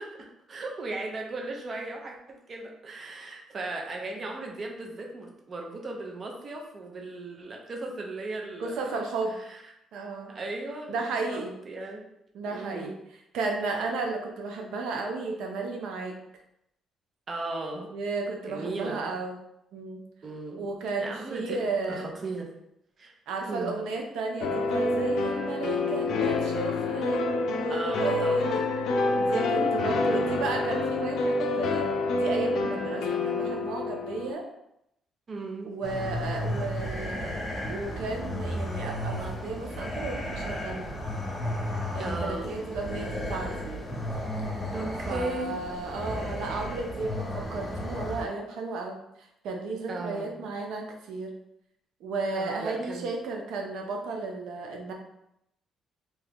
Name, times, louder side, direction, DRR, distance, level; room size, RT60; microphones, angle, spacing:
voice 1, 0.0-9.0 9.3-9.7 10.3-12.0 12.5-12.9 17.3-17.9 18.5-19.0 20.2-20.7 21.0-22.5 23.0-23.1 23.5-23.8 27.7-28.6 29.5-29.9 35.3-35.7 42.0-42.6 44.7-45.6 49.9-50.4 52.3-53.1, right 2 dB, 45° right, 1 dB, 0.7 m, -37 dB
voice 2, 8.6-9.3 9.9-10.3 10.9-11.5 12.3-12.9 13.3-16.1 17.7-19.4 19.7-20.0 20.6-22.1 23.3-27.2 27.6-28.6 29.1-31.9 32.1-34.4 35.6-37.4 37.7-40.9 41.9-43.9 45.1-51.3 52.0-54.9, right 3 dB, 80° right, 2 dB, 0.6 m, -33 dB
sound 1, 24.4-34.3, left 2 dB, 75° left, 0.4 m, -27 dB
sound 2, 35.8-48.2, left 1 dB, 25° left, 0.9 m, -34 dB
3.0 x 2.3 x 3.5 m, 0.80 s
cardioid pair, 80°, 0 cm